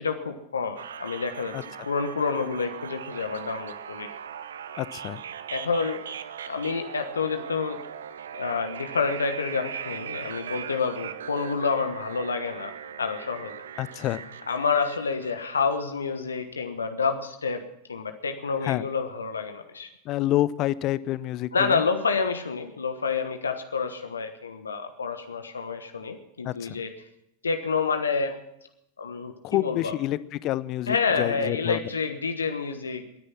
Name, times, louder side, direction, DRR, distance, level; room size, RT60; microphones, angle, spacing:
voice 1, 0.0-1.5 1.9-4.1 5.5-6.0 6.5-7.8 8.3-12.7 13.0-13.6 14.5-17.6 17.9-19.9 21.5-26.9 27.4-28.4 29.0-29.3 29.6-29.9 30.9-33.0, left 5 dB, 75° left, 7 dB, 1.2 m, -28 dB
sound 1, 0.8-15.8, right 8 dB, 65° right, 0.8 m, -39 dB
voice 2, 4.8-5.2 13.8-14.3 18.6-18.9 20.0-21.8 26.4-26.8 29.4-31.9, left 14 dB, 35° left, 18 dB, 0.6 m, -28 dB
21.0 x 9.8 x 5.9 m, 0.81 s
figure-of-eight pair, 90°, 0 cm